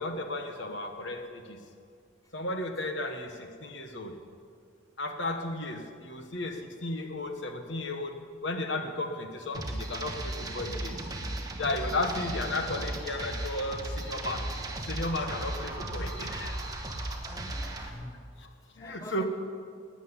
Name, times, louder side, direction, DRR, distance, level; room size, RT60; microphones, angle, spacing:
voice 1, 0.0-1.6 2.3-4.1 5.0-11.0 11.5-14.5 14.9-16.7 18.4-19.2, left 2 dB, 60° left, 6 dB, 1.4 m, -34 dB
sound 1, 9.5-17.9, right 1 dB, 20° right, 1.2 m, -36 dB
voice 2, 17.1-18.2 18.8-19.2, equal, 15° left, 4 dB, 0.7 m, -46 dB
12.5 x 9.1 x 9.8 m, 2.3 s
head